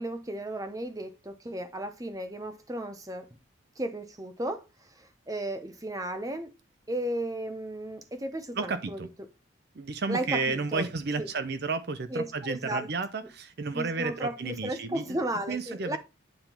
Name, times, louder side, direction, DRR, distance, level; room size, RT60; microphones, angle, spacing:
voice 1, 0.0-3.3 3.8-4.6 5.0-6.5 6.9-9.0 10.1-10.8 11.2-11.3 12.1-12.9 13.7-16.0, right 1 dB, 15° right, 0.8 m, -34 dB
voice 2, 8.5-9.1 9.7-15.2 15.5-16.0, right 4 dB, 55° right, 0.6 m, -32 dB
9.0 x 3.7 x 4.4 m
head